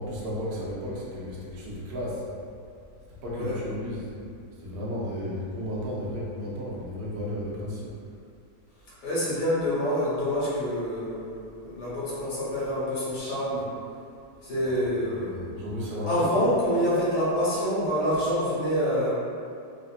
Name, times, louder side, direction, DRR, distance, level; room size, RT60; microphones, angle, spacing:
voice 1, 0.0-2.3 3.1-4.1 4.6-7.9 14.6-16.5, equal, 85° right, -6 dB, 0.5 m, -34 dB
voice 2, 9.0-13.6 14.4-15.4 16.1-19.1, equal, 75° left, -10 dB, 1.6 m, -26 dB
3.3 x 2.5 x 2.3 m, 2.4 s
omnidirectional pair, 1.8 m